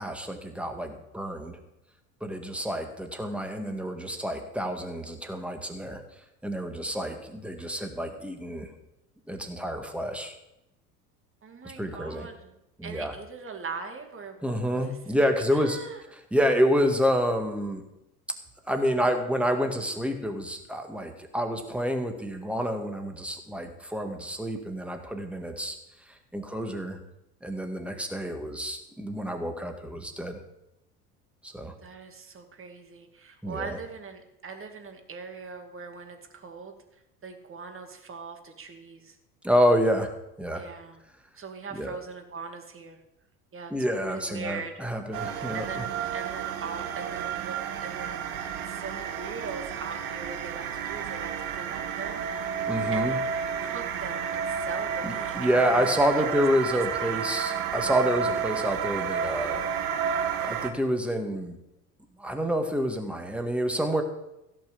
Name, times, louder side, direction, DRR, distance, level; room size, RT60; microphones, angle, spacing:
voice 1, 0.0-1.6 2.2-6.0 6.4-8.7 9.3-10.3 11.6-12.3 12.8-13.1 14.4-15.8 16.3-17.8 18.7-25.8 26.3-27.0 27.4-30.4 31.4-31.7 33.4-33.8 39.4-40.1 40.4-40.6 41.7-41.9 43.7-45.7 52.7-53.2 55.0-59.6 60.4-61.6 62.2-64.0, equal, 5° right, 5 dB, 1.9 m, -28 dB
voice 2, 11.4-12.6 12.8-15.0 15.5-16.0 19.0-19.1 31.8-36.7 37.2-39.2 40.5-41.0 41.4-43.0 43.5-43.7 44.0-44.9 45.1-45.9 46.1-48.2 48.7-52.6 52.9-53.1 53.6-55.9 56.2-56.3 56.7-57.2, right 4 dB, 25° right, 5 dB, 2.2 m, -41 dB
sound 1, 45.1-60.7, right 7 dB, 65° right, 1.5 m, -31 dB
15.5 x 5.9 x 7.0 m, 0.88 s
figure-of-eight pair, 70°, 47 cm